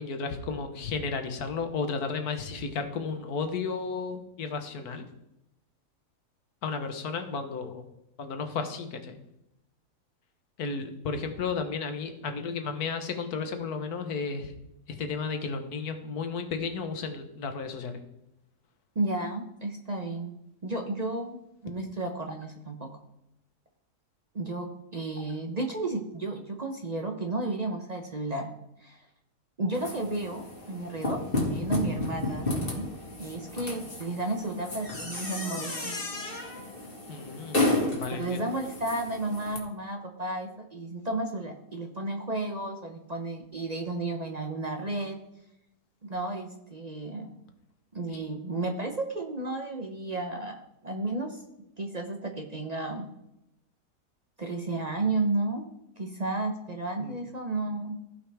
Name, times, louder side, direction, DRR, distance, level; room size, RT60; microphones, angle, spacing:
voice 1, 0.0-5.0 6.6-7.9 8.2-9.2 10.6-14.5 14.9-18.0 37.1-38.4 57.0-57.2, left 5 dB, 70° left, 7 dB, 1.5 m, -33 dB
voice 2, 19.0-20.3 20.6-22.9 24.3-28.5 28.8-29.0 29.6-32.9 33.2-36.0 38.1-45.2 46.0-47.4 47.9-51.4 51.8-53.1 54.4-55.7 56.0-57.9, right 2 dB, 40° right, 3 dB, 0.6 m, -33 dB
sound 1, 29.7-39.6, left 2 dB, 35° left, 1.9 m, -32 dB
15.5 x 5.5 x 3.4 m, 0.87 s
omnidirectional pair, 1.7 m